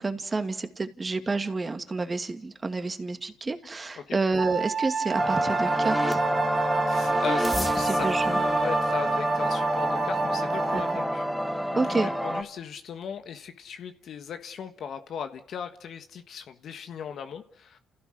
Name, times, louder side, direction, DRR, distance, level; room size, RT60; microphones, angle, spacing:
voice 1, 0.0-6.2 7.6-8.4 10.7-10.8 11.8-12.1, right 3 dB, 25° right, 2.4 m, -29 dB
Wind instrument woodwind instrument, 4.4-11.1, right 7 dB, 45° right, 2.3 m, -31 dB
sound 1, 5.2-12.4, equal, 5° left, 2.2 m, -27 dB
voice 2, 6.9-17.8, left 7 dB, 60° left, 1.5 m, -38 dB
29.5 x 16.0 x 6.4 m
cardioid pair, 85°, 0 cm